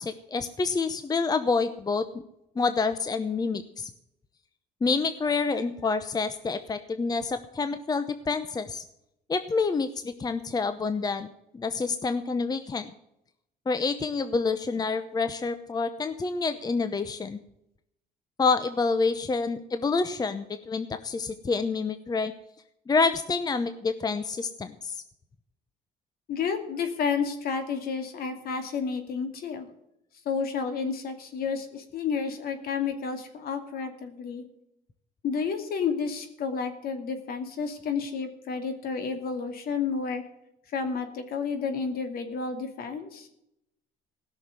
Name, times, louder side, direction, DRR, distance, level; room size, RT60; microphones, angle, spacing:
voice 1, 0.0-2.0 2.6-3.9 4.8-8.8 9.3-11.3 11.5-12.9 13.7-17.4 18.4-22.3 22.9-25.0, left 4 dB, 25° left, 11 dB, 0.8 m, -28 dB
voice 2, 26.3-29.7 30.2-34.4 35.2-40.2 40.7-43.3, left 5 dB, 65° left, 7 dB, 2.6 m, -31 dB
16.5 x 6.5 x 7.9 m, 0.81 s
cardioid pair, 110°, 17 cm